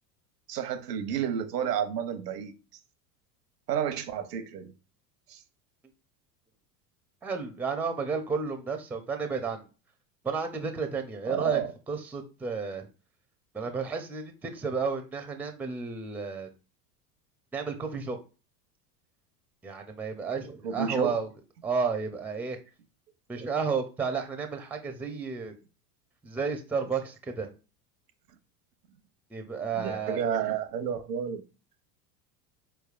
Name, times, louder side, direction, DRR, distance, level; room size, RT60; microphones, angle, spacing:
voice 1, 0.5-2.5 3.7-4.7 5.3-5.4 11.3-11.7 20.6-21.2 29.7-31.4, right 8 dB, 90° right, 0.8 m, -31 dB
voice 2, 7.2-9.7 10.2-11.6 11.9-12.9 13.5-16.5 17.5-18.2 19.6-21.3 21.6-22.6 23.3-25.5 26.2-27.5 29.3-30.2, right 5 dB, 5° right, 0.4 m, -32 dB
4.4 x 3.3 x 2.4 m
hypercardioid pair, 90°, 47 cm